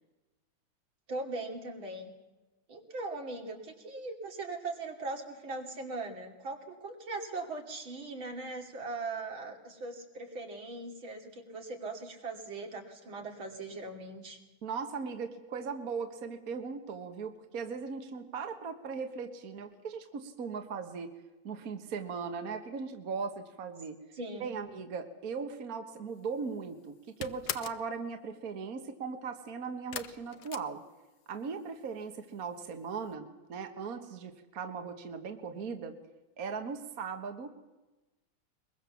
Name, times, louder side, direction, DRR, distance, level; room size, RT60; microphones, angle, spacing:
voice 1, 1.1-2.1 2.7-14.4 24.2-24.5, right 3 dB, 75° right, 2 dB, 3.6 m, -40 dB
voice 2, 14.6-21.1 21.4-24.0 24.4-30.8 31.3-36.0 36.4-37.5, right 5 dB, 50° right, 6 dB, 1.8 m, -38 dB
sound 1, 26.2-26.6 26.8-27.9 29.9-31.4 31.7-32.3 32.6-32.7 33.1-33.2, left 10 dB, 60° left, 1.4 m, -41 dB
22.5 x 22.0 x 7.1 m, 1.1 s
omnidirectional pair, 2.2 m